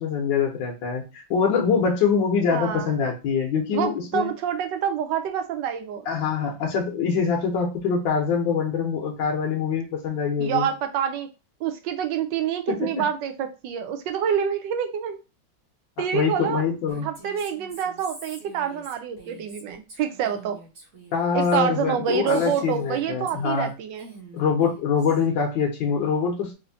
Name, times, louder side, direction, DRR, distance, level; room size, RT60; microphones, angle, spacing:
voice 1, 0.0-4.3 6.1-10.7 12.7-12.9 16.1-17.1 21.1-23.7 24.3-26.5, left 6 dB, 75° left, -1 dB, 1.5 m, -24 dB
voice 2, 2.5-2.9 3.7-6.1 10.4-11.3 11.6-15.2 16.0-16.6 17.0-20.6 21.3-24.1, right 8 dB, 75° right, 7 dB, 1.2 m, -27 dB
Female speech woman speaking, 16.9-23.7 24.0-25.3, right 2 dB, 45° right, 1.5 m, -46 dB
4.3 x 2.7 x 2.7 m, 0.29 s
omnidirectional pair, 2.1 m